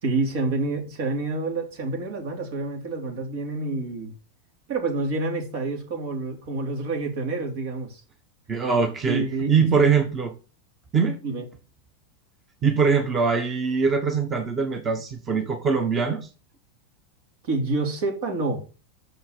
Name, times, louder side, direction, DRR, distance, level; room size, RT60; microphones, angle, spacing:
voice 1, 0.0-4.1 4.7-8.0 9.1-9.7 11.2-11.4 17.4-18.6, right 3 dB, 65° right, 3.4 m, -28 dB
voice 2, 8.5-10.3 10.9-11.2 12.6-16.3, right 5 dB, 25° right, 1.4 m, -22 dB
6.7 x 5.5 x 6.9 m
hypercardioid pair, 115°, 0 cm